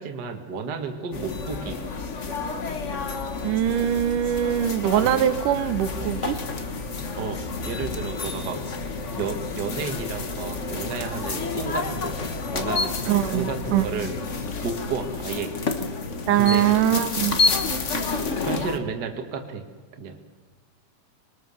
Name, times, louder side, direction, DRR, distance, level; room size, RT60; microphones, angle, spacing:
voice 1, 0.0-1.8 5.0-5.1 7.2-8.8 9.1-14.2 14.6-15.6 16.4-17.0 17.7-17.8 18.4-19.7 19.9-20.2, right 5 dB, 40° right, 5 dB, 2.0 m, -32 dB
sound 1, 1.1-18.8, left 4 dB, 60° left, 0.7 m, -29 dB
voice 2, 3.4-6.4 13.1-13.9 16.3-17.4, right 11 dB, 85° right, 11 dB, 2.5 m, -22 dB
24.0 x 19.5 x 7.1 m, 1.4 s
omnidirectional pair, 3.6 m